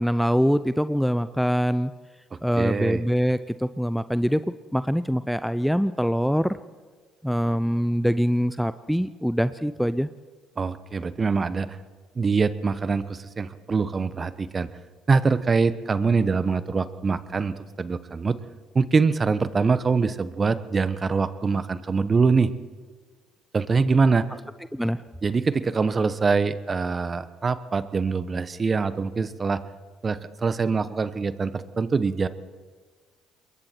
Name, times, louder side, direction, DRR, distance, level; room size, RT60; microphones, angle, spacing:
voice 1, 0.0-1.9 2.4-4.5 4.7-6.6 7.2-10.1 24.7-25.0, equal, ahead, 14 dB, 0.6 m, -24 dB
voice 2, 2.5-3.0 10.6-11.8 12.1-14.7 15.1-18.4 18.7-22.5 23.5-24.2 25.2-29.6 30.0-32.3, right 4 dB, 35° right, 14 dB, 1.2 m, -24 dB
27.0 x 21.5 x 4.5 m, 1.5 s
hypercardioid pair, 55°, 0 cm